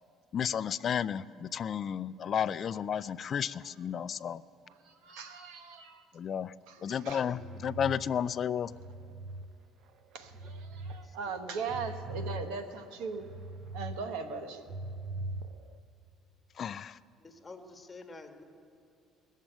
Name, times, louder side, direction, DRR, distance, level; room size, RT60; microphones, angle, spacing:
voice 1, 0.3-4.4 6.1-6.5 6.8-8.7 16.6-17.0, left 8 dB, 45° left, 16 dB, 0.3 m, -32 dB
voice 2, 4.7-6.0 6.7-7.4 10.1-13.3 13.7-14.6, right 5 dB, 85° right, 7 dB, 1.1 m, -39 dB
voice 3, 6.9-7.4 11.0-11.9 17.2-18.4, left 3 dB, 20° left, 5 dB, 1.5 m, -50 dB
sound 1, 7.3-9.4 9.9-11.0 11.3-14.0 14.3-15.8, right 2 dB, 65° right, 0.8 m, -42 dB
19.5 x 7.4 x 9.0 m, 2.4 s
cardioid pair, 105°, 0 cm